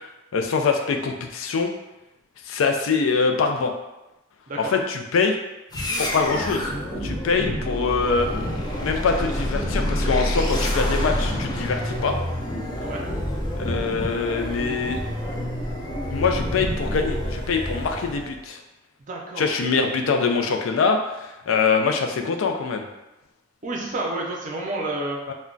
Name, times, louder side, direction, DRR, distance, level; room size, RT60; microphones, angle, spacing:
voice 1, 0.3-1.7 2.5-3.7 4.6-5.4 6.0-6.7 7.0-8.3 8.8-12.2 13.6-15.0 16.1-18.6 19.4-22.9 25.3-25.4, left 5 dB, 85° left, 4 dB, 0.4 m, -23 dB
sound 1, 5.7-18.4, equal, 20° left, 0.4 m, -27 dB
voice 2, 19.0-19.6 23.6-25.2, right 2 dB, 40° right, -1 dB, 0.5 m, -30 dB
2.2 x 2.1 x 3.7 m, 0.99 s
head